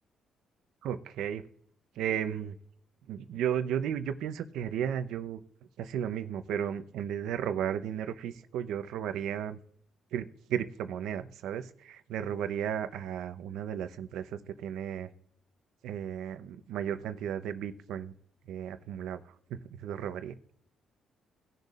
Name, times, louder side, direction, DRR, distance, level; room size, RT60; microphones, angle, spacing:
voice 1, 0.8-1.4 2.0-2.6 3.1-5.4 5.8-9.6 10.1-15.1 15.8-18.1 18.5-19.2 19.5-20.3, right 9 dB, 85° right, 10 dB, 0.8 m, -34 dB
19.0 x 6.7 x 2.5 m, 0.66 s
cardioid pair, 90°, 0 cm